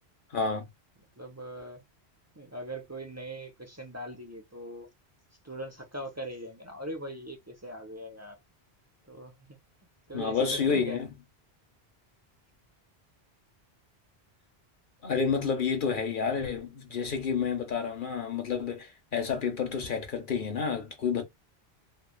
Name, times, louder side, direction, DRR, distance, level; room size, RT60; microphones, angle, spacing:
voice 1, 0.3-0.7 10.1-11.1 15.0-21.2, left 6 dB, 55° left, 1.0 m, -29 dB
voice 2, 1.2-1.8 2.3-4.9 5.4-8.4 9.1-9.6 10.1-11.0, right 1 dB, 20° right, 0.6 m, -40 dB
3.1 x 2.3 x 2.3 m
omnidirectional pair, 1.1 m